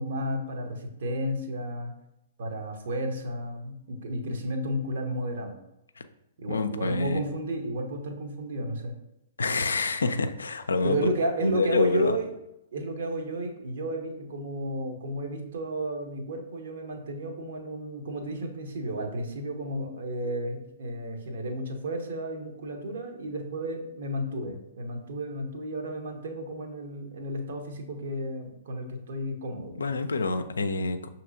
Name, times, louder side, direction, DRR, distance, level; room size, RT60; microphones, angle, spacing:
voice 1, 0.0-1.9 2.4-5.6 6.4-8.9 10.8-12.3 12.7-29.8, right 1 dB, 60° right, 3 dB, 0.8 m, -32 dB
voice 2, 6.5-7.2 9.4-11.0 11.4-12.2 29.8-31.1, left 3 dB, 75° left, 9 dB, 0.3 m, -27 dB
6.0 x 2.8 x 2.5 m, 0.86 s
figure-of-eight pair, 115°, 0 cm